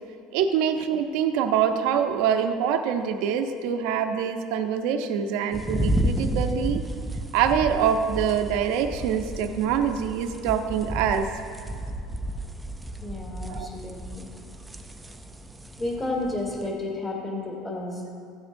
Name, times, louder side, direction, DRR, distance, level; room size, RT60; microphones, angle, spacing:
voice 1, 0.3-6.8 7.3-11.3 13.5-13.7, right 8 dB, 70° right, 6 dB, 0.7 m, -25 dB
sound 1, 5.5-16.7, right 1 dB, 5° right, 0.5 m, -32 dB
voice 2, 13.0-14.3 15.8-18.1, left 2 dB, 25° left, -3 dB, 2.0 m, -32 dB
15.0 x 9.7 x 2.6 m, 2.3 s
cardioid pair, 155°, 0 cm